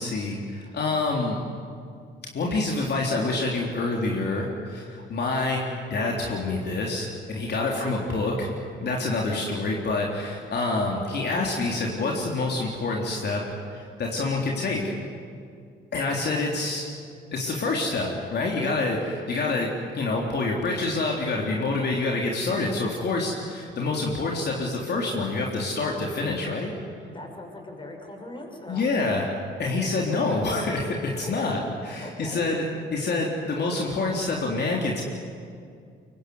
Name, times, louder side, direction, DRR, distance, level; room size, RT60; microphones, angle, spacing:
voice 1, 0.0-1.4 2.3-5.6 5.9-8.5 8.8-13.4 13.7-14.9 15.9-16.8 17.3-26.7 28.7-29.3 29.6-32.6 32.9-35.0, left 3 dB, 55° left, -1 dB, 3.7 m, -27 dB
voice 2, 7.5-7.9 27.1-29.2 31.2-31.7 32.0-32.5, left 1 dB, 25° left, 2 dB, 6.4 m, -40 dB
24.0 x 23.5 x 9.7 m, 2.3 s
cardioid pair, 90°, 20 cm